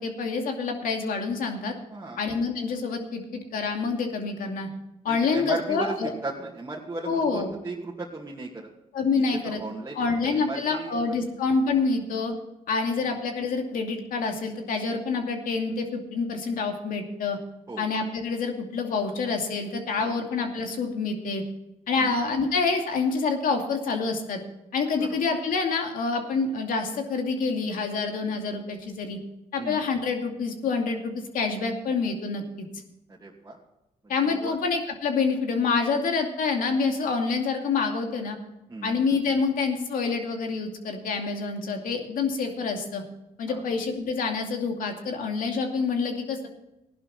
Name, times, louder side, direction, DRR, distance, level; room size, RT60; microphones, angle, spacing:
voice 1, 0.0-1.7 2.2-4.7 5.0-6.1 7.1-7.5 8.9-9.6 10.0-12.3 12.7-17.4 17.8-21.4 21.9-24.4 24.7-29.2 29.5-32.7 34.1-38.4 38.8-43.0 43.4-46.5, left 4 dB, 75° left, 3 dB, 2.5 m, -27 dB
voice 2, 1.9-2.2 5.1-8.7 9.1-11.2 13.0-13.2 17.7-17.9 20.0-20.2 21.9-22.2 25.0-25.2 29.6-29.8 33.1-33.6 34.0-34.6 38.7-39.0 43.5-43.7, right 3 dB, 20° right, -5 dB, 2.4 m, -36 dB
16.0 x 11.5 x 4.3 m, 0.91 s
cardioid pair, 70°, 14 cm